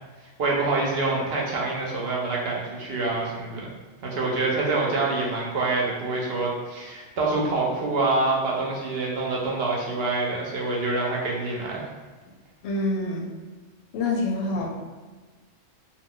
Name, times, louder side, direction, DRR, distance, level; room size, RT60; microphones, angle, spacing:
voice 1, 0.4-3.7 4.0-11.8, right 3 dB, 60° right, -3 dB, 0.7 m, -26 dB
voice 2, 12.6-13.3 13.9-14.7, left 2 dB, 65° left, -1 dB, 0.8 m, -26 dB
2.3 x 2.2 x 3.6 m, 1.3 s
omnidirectional pair, 1.3 m